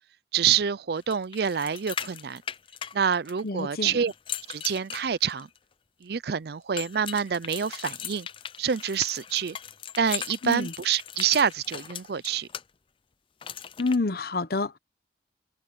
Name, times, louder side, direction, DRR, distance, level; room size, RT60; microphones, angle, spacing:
voice 1, 0.3-2.4 2.9-4.1 4.5-5.5 6.0-8.3 8.6-9.6 10.0-12.5, right 7 dB, 60° right, 0.5 m, -27 dB
sound 1, 1.1-3.6 4.1-5.6 6.8-12.6 13.4-14.0, left 8 dB, 30° left, 0.4 m, -38 dB
voice 2, 3.4-4.0 10.4-10.7 13.8-14.8, left 3 dB, 55° left, 0.9 m, -28 dB
head